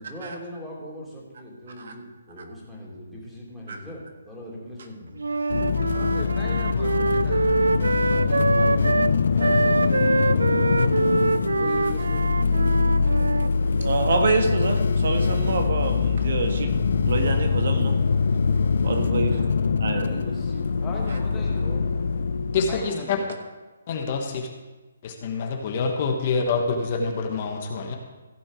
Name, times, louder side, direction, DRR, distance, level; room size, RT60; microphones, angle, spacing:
voice 1, 0.0-5.4 8.0-10.4 11.6-13.1 19.9-20.7 21.3-21.8, left 1 dB, 5° right, -5 dB, 2.9 m, -40 dB
Wind instrument woodwind instrument, 5.2-13.5, right 3 dB, 90° right, 0.4 m, -24 dB
sound 1, 5.5-22.9, left 5 dB, 65° left, 0.7 m, -23 dB
voice 2, 5.9-7.6 8.5-8.7 20.8-21.7 22.5-23.3, left 4 dB, 15° left, -2 dB, 1.5 m, -38 dB
voice 3, 13.6-16.7 17.0-17.9 18.8-19.4 19.8-20.0, right 4 dB, 60° right, 5 dB, 1.5 m, -26 dB
voice 4, 22.5-23.2 23.9-24.5 25.0-28.0, left 4 dB, 40° left, 3 dB, 1.3 m, -26 dB
15.5 x 6.1 x 5.0 m, 1.2 s
hypercardioid pair, 155°, 0 cm